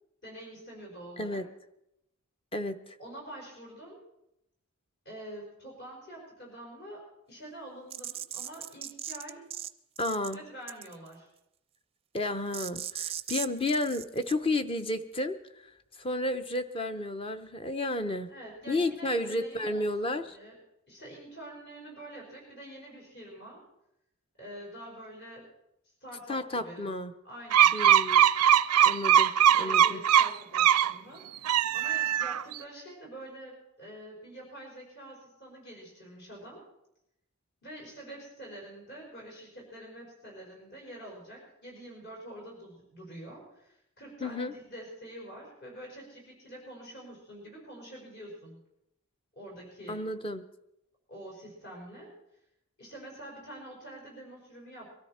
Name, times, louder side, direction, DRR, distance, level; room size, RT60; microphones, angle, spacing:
voice 1, 0.2-1.4 3.0-4.0 5.0-9.5 10.3-11.3 18.3-19.9 20.2-20.6 20.9-23.6 24.4-25.5 26.0-26.9 27.2-27.8 29.5-31.3 31.7-36.6 37.6-48.6 49.3-50.0 51.1-52.1 52.8-54.9, right 1 dB, 50° left, -2 dB, 5.1 m, -46 dB
voice 2, 2.5-2.9 10.0-10.4 12.1-15.4 15.6-15.7 16.0-18.3 18.7-20.4 26.3-27.1 27.7-28.3 28.8-29.3 29.6-30.0 44.2-44.5 49.9-50.4, left 2 dB, 25° left, 9 dB, 0.8 m, -32 dB
sound 1, 7.9-9.7 10.0-10.3 10.7-11.1 12.5-14.3, right 10 dB, 25° right, 0.5 m, -38 dB
sound 2, 27.5-30.9 31.4-32.6, right 10 dB, 85° right, 0.5 m, -21 dB
22.5 x 13.5 x 4.3 m, 0.83 s
head